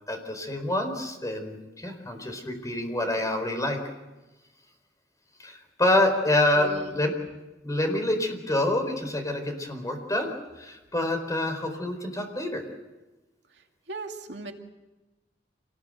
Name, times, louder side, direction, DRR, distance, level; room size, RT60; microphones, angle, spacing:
voice 1, 0.1-3.8 5.4-7.1 7.6-10.3 10.6-12.6, left 1 dB, 20° left, 5 dB, 4.5 m, -27 dB
voice 2, 6.6-7.0 13.9-14.5, right 2 dB, 80° right, 3 dB, 2.3 m, -37 dB
27.0 x 19.5 x 7.9 m, 1.1 s
head